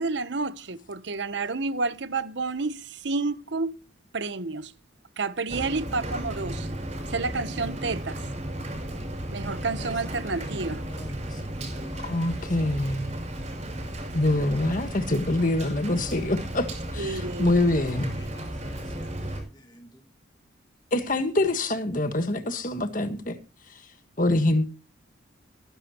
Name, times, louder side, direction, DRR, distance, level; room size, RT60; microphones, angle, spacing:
voice 1, 0.0-3.8 4.1-4.7 5.2-6.7 7.1-8.2 9.3-10.8 17.0-17.5, right 3 dB, 65° right, 0.9 m, -30 dB
Rain, 5.5-19.4, right 1 dB, 35° right, 5.8 m, -34 dB
voice 2, 10.8-12.5 18.6-19.5 19.8-19.9, equal, 20° left, 2.0 m, -48 dB
voice 3, 12.0-13.1 14.1-18.1 20.9-23.3 24.2-24.7, left 2 dB, 40° left, 1.5 m, -25 dB
19.5 x 10.5 x 3.0 m
head